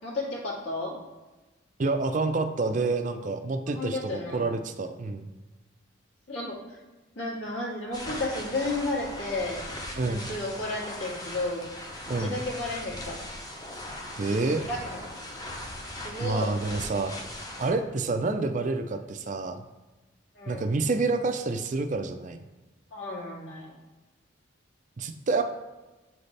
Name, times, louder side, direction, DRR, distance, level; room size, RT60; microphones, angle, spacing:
voice 1, 0.0-0.9 3.7-4.4 6.3-6.8 7.2-9.6 10.0-11.6 12.2-13.2 14.7-15.2 16.0-16.5 20.3-20.7 22.9-23.7, left 2 dB, 65° left, -6 dB, 2.1 m, -32 dB
voice 2, 1.8-5.3 10.0-10.3 12.1-12.4 14.2-14.7 16.2-17.1 17.6-19.6 20.5-22.4 25.0-25.4, right 3 dB, 40° right, 7 dB, 0.4 m, -28 dB
sound 1, 7.9-17.7, left 1 dB, 20° left, 0.7 m, -39 dB
7.9 x 4.1 x 3.3 m, 1.2 s
head